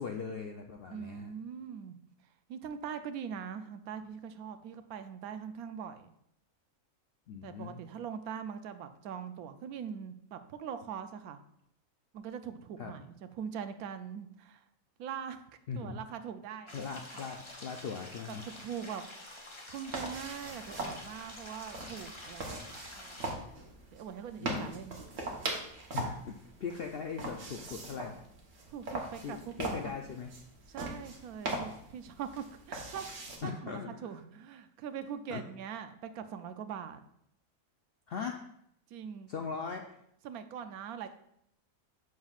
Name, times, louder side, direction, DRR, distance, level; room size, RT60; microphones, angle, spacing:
voice 1, 0.0-1.3 7.3-7.8 12.8-12.9 15.7-16.0 16.7-18.4 24.4-24.8 25.9-28.3 29.2-30.3 33.4-34.1 35.3-35.4 38.1-38.4 39.3-40.0, left 5 dB, 70° left, 3 dB, 0.5 m, -40 dB
voice 2, 0.9-2.0 2.5-6.1 7.4-11.4 12.1-14.6 15.0-15.4 15.8-16.9 17.1-17.2 18.3-19.0 19.7-23.2 23.9-25.0 28.7-30.0 30.7-37.0 38.9-39.3 40.2-41.1, right 8 dB, 85° right, 9 dB, 1.1 m, -42 dB
sound 1, 16.7-23.3, left 1 dB, 25° left, 0.8 m, -48 dB
sound 2, 19.9-33.4, right 2 dB, 60° right, 1.4 m, -41 dB
7.2 x 6.1 x 2.4 m, 0.74 s
omnidirectional pair, 1.5 m